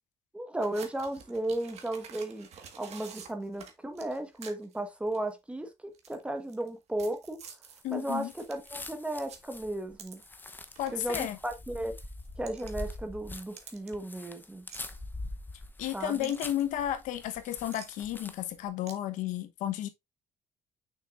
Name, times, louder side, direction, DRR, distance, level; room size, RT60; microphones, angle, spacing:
voice 1, 0.3-2.5 2.8-7.5 7.9-10.2 10.9-11.9 12.4-14.7 15.9-16.3, right 1 dB, 10° right, 1.3 m, -35 dB
sound 1, 0.6-4.8 5.1-5.3 5.9-6.7 7.0-10.5 10.8-11.2 12.2-12.7 13.6-13.9 14.7-14.8 16.2-16.6 17.7-17.9 18.9-19.0, right 7 dB, 55° right, 1.6 m, -48 dB
voice 2, 7.8-8.3 10.8-11.4 15.8-19.9, left 12 dB, 80° left, 1.0 m, -33 dB
sound 2, 7.9-18.6, left 2 dB, 15° left, 0.8 m, -44 dB
6.4 x 6.1 x 2.5 m
cardioid pair, 110°, 13 cm